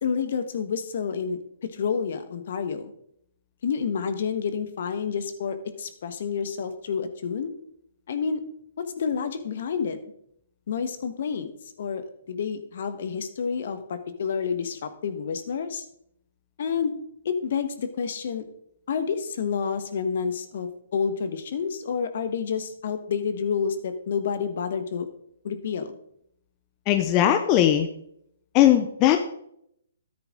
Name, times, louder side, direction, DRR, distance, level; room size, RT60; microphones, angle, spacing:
voice 1, 0.0-2.9 3.6-7.5 8.1-8.4 8.8-10.0 10.7-11.5 11.8-15.8 16.6-16.9 17.2-18.4 18.9-25.1 25.4-25.9, left 6 dB, 55° left, 10 dB, 1.4 m, -29 dB
voice 2, 26.9-27.9 28.5-29.2, left 12 dB, 30° left, 8 dB, 0.8 m, -19 dB
13.0 x 10.0 x 3.8 m, 0.72 s
figure-of-eight pair, 130°, 0 cm